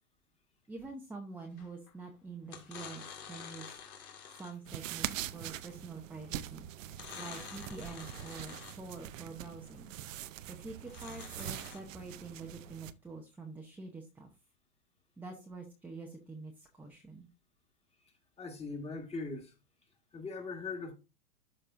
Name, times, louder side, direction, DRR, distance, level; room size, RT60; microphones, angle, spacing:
voice 1, 0.7-3.7 4.4-6.7 7.2-9.9 10.5-14.3 15.2-17.3, right 3 dB, 5° right, 0.8 m, -46 dB
sound 1, 1.6-1.9 2.4-4.7 6.9-8.9 10.8-11.8, left 7 dB, 75° left, 2.1 m, -48 dB
sound 2, 4.6-12.9, right 12 dB, 65° right, 0.7 m, -43 dB
voice 2, 18.4-19.5 20.1-20.9, left 3 dB, 15° left, 1.7 m, -40 dB
12.0 x 4.2 x 2.6 m
hypercardioid pair, 125°, 43 cm